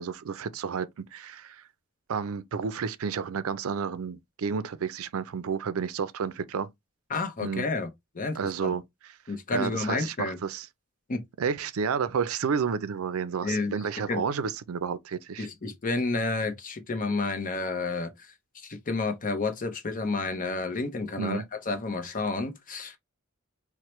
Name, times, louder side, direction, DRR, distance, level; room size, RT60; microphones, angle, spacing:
voice 1, 0.0-1.6 2.1-6.7 7.4-7.7 8.3-9.1 9.5-10.7 11.4-15.5 21.2-21.4, right 6 dB, 80° right, 0.4 m, -31 dB
voice 2, 7.1-7.9 8.1-8.7 9.3-10.4 11.1-11.2 13.4-13.7 14.1-14.2 15.4-18.1 18.6-23.0, left 3 dB, 40° left, 0.7 m, -30 dB
4.3 x 2.1 x 3.0 m
head